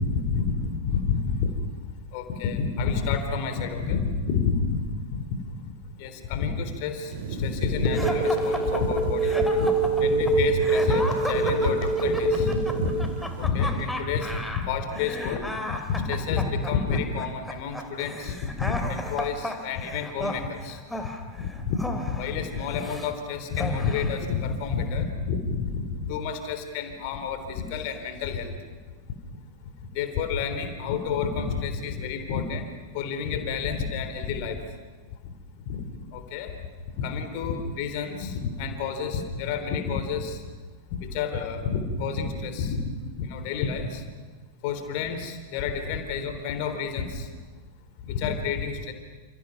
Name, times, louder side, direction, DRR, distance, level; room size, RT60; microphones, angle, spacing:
voice 1, 0.9-1.5 2.1-4.8 5.1-5.2 5.6-5.7 6.0-12.9 13.4-20.8 21.4-21.8 22.1-28.5 29.9-32.7 32.9-34.6 35.2-35.3 35.7-35.8 36.1-36.5 36.9-40.4 41.0-42.8 43.2-44.0 44.6-47.3 48.0-48.9, left 6 dB, 45° left, 7 dB, 3.7 m, -29 dB
sound 1, 7.1-13.5, right 6 dB, 55° right, 3.3 m, -37 dB
Telephone, 7.8-13.1, right 4 dB, 40° right, 6.2 m, -24 dB
sound 2, 7.9-23.1 23.5-24.2, left 1 dB, 5° left, 3.0 m, -34 dB
29.5 x 28.0 x 5.9 m, 1.4 s
figure-of-eight pair, 90°, 0 cm